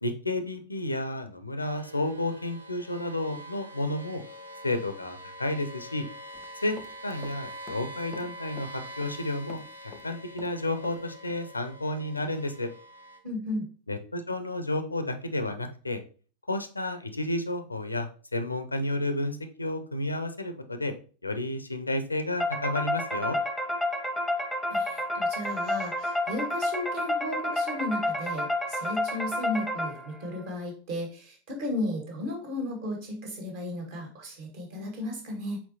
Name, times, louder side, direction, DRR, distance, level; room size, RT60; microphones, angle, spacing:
voice 1, 0.0-4.2 4.6-6.0 6.6-6.8 7.0-9.6 10.0-12.7 13.9-16.0 16.5-20.9 21.2-23.4, left 1 dB, 80° left, 9 dB, 0.5 m, -31 dB
sound 1, 1.6-13.2, equal, 85° right, 0.6 m, -45 dB
Run, 6.3-7.4 7.7-9.2 9.5-11.0 11.3-11.4, left 5 dB, 25° left, 0.5 m, -47 dB
voice 2, 13.2-13.7 24.7-35.6, left 1 dB, 50° right, 1 dB, 1.5 m, -34 dB
sound 2, 22.4-30.3, left 1 dB, ahead, 0.8 m, -30 dB
4.3 x 4.1 x 2.7 m, 0.39 s
figure-of-eight pair, 90°, 0 cm